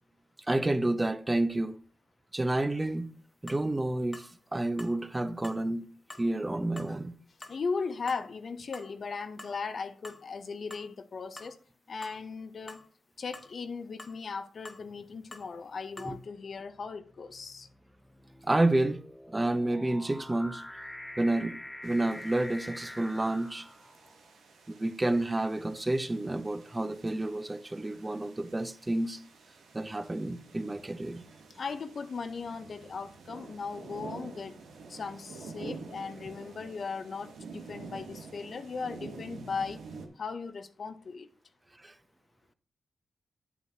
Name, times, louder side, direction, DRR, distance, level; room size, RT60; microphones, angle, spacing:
voice 1, 0.5-1.8 2.3-3.1 3.4-5.9 6.2-7.2 16.0-16.2 18.4-19.0 19.3-20.6 21.2-21.6 21.8-23.7 24.7-29.2 29.7-31.2 41.8-41.9, right 2 dB, 25° right, 0.8 m, -29 dB
sound 1, 3.0-3.1 3.5-3.7 4.1-4.3 4.8-5.0 5.4-5.6 6.1-6.3 6.8-6.9 7.4-7.6 8.1-8.2 8.7-8.9 9.4-9.6 10.0-10.2 10.7-10.9 11.4-11.5 12.0-12.2 12.7-12.8 13.3-13.5 14.0-14.2 14.7-14.8 15.3-15.5 16.0-16.1, left 2 dB, 30° left, 1.2 m, -47 dB
voice 2, 7.5-11.6 11.9-12.8 13.2-17.7 31.5-34.6 34.9-39.8 40.2-41.3, left 5 dB, 60° left, 0.7 m, -37 dB
sound 2, 14.9-15.3 16.1-24.3, left 1 dB, 10° left, 0.6 m, -46 dB
sound 3, 21.8-40.1, right 4 dB, 90° right, 1.1 m, -48 dB
8.4 x 7.6 x 2.8 m
supercardioid pair, 50°, 0 cm